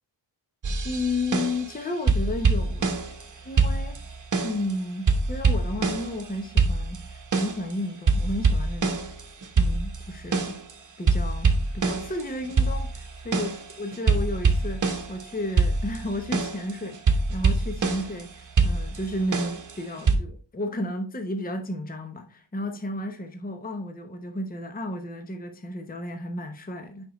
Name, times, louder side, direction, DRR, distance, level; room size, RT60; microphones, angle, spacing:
sound 1, 0.6-1.8 2.1-3.3 3.6-4.7 5.1-6.3 6.6-7.7 8.1-10.7 11.1-15.2 15.6-18.2 18.6-20.2, right 4 dB, 40° right, 1.1 m, -24 dB
voice 1, 0.8-3.0 3.4-4.0 4.4-9.1 9.6-10.6 11.0-27.1, left 1 dB, 20° left, 0.8 m, -33 dB
6.6 x 5.2 x 3.0 m
wide cardioid pair, 100°, 47 cm